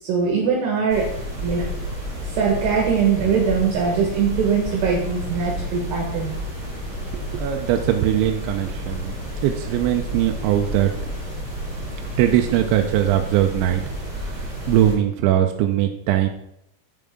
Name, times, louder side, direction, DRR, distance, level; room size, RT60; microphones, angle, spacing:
voice 1, 0.0-1.1 1.4-1.7 2.2-6.3, right 6 dB, 65° right, -1 dB, 3.1 m, -21 dB
sound 1, 0.9-15.0, equal, 30° right, 3.3 m, -31 dB
voice 2, 7.1-9.2 9.4-10.9 12.2-13.8 14.3-16.3, right 12 dB, 85° right, 4 dB, 2.8 m, -21 dB
9.2 x 7.1 x 3.6 m, 0.80 s
omnidirectional pair, 5.6 m